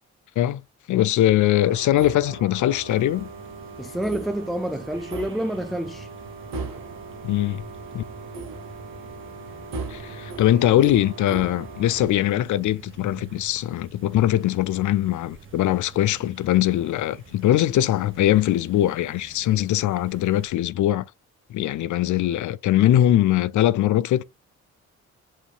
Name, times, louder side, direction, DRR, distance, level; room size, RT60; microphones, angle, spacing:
voice 1, 0.9-3.3 7.2-7.6 7.9-8.0 9.9-21.0 21.5-24.2, left 13 dB, 60° left, 0.5 m, -21 dB
sound 1, 1.6-12.0, right 3 dB, 75° right, 1.3 m, -38 dB
sound 2, 2.9-20.5, right 4 dB, 35° right, 1.4 m, -46 dB
voice 2, 3.8-6.1, right 1 dB, ahead, 0.4 m, -28 dB
7.3 x 2.7 x 2.4 m
supercardioid pair, 55°, 34 cm